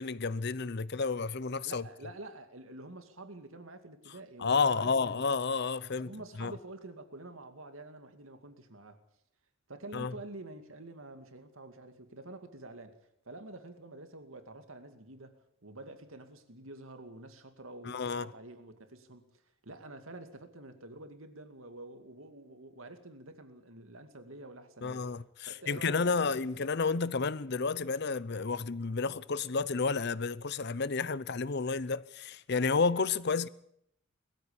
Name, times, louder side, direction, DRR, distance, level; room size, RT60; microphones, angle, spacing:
voice 1, 0.0-1.8 4.4-6.1 6.4-6.5 9.9-10.1 17.8-18.3 24.8-33.5, left 4 dB, 55° left, 0.7 m, -31 dB
voice 2, 1.6-5.3 6.0-9.0 9.7-19.3 19.6-25.1 25.5-26.3, right 2 dB, 75° right, 2.4 m, -48 dB
20.5 x 14.5 x 8.7 m
head